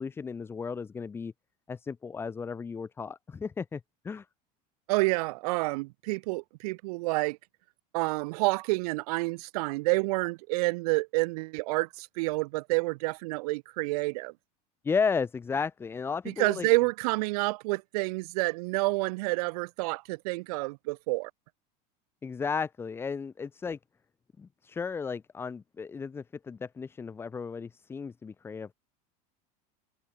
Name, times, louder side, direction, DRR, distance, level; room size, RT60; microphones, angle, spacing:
voice 1, 0.0-1.3 1.7-4.2 14.8-16.7 22.2-23.8 24.4-28.7, left 5 dB, 10° left, 0.9 m, -34 dB
voice 2, 4.9-7.4 7.9-14.3 16.3-21.3, right 24 dB, 70° right, 1.0 m, -29 dB
cardioid pair, 175°, 20 cm